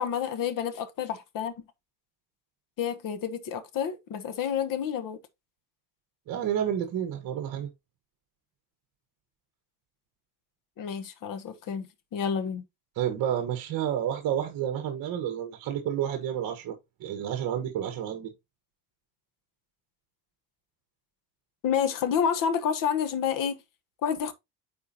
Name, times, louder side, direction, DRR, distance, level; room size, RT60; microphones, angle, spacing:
voice 1, 0.0-1.5 2.8-5.2 10.8-12.6 21.6-23.6 24.0-24.3, left 7 dB, 50° left, 1.2 m, -29 dB
voice 2, 6.3-7.7 13.0-16.7 17.0-18.3, right 10 dB, 50° right, 1.4 m, -30 dB
9.6 x 4.4 x 2.8 m
cardioid pair, 150°, 43 cm